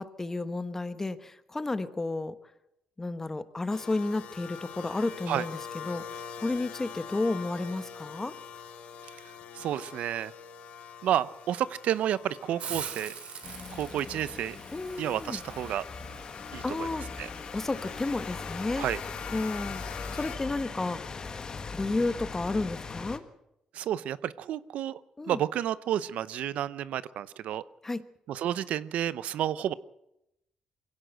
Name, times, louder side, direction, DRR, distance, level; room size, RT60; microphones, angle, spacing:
voice 1, 0.0-2.3 3.0-5.6 5.8-6.0 6.4-8.3 14.7-15.4 16.6-17.0 17.5-18.9 19.3-19.8 20.1-21.0 21.7-23.2 25.2-25.4 27.8-28.0, left 2 dB, 20° left, 12 dB, 1.2 m, -31 dB
sound 1, 3.7-20.4, left 7 dB, 85° left, 2.4 m, -45 dB
voice 2, 9.2-10.3 11.0-13.1 13.7-14.6 15.0-15.8 16.5-16.9 17.2-17.3 18.8-19.0 23.7-25.0 25.3-27.6 28.3-29.7, right 11 dB, 80° right, 17 dB, 0.7 m, -31 dB
Hiss, 12.6-18.2, right 7 dB, 65° right, 3.0 m, -44 dB
sound 2, 13.4-23.2, left 4 dB, 35° left, 1.7 m, -40 dB
23.0 x 16.5 x 8.0 m, 0.84 s
cardioid pair, 115°, 2 cm